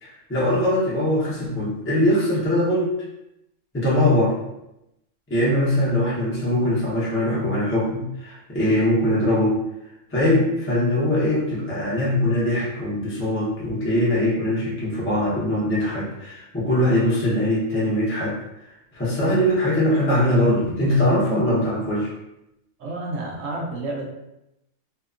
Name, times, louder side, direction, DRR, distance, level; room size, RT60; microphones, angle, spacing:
voice 1, 0.0-2.9 3.7-4.4 5.3-9.6 10.1-18.3 18.9-22.1, left 1 dB, 15° left, -7 dB, 0.5 m, -21 dB
voice 2, 22.8-24.1, right 2 dB, 70° right, -2 dB, 1.0 m, -30 dB
2.8 x 2.3 x 2.4 m, 0.87 s
omnidirectional pair, 1.4 m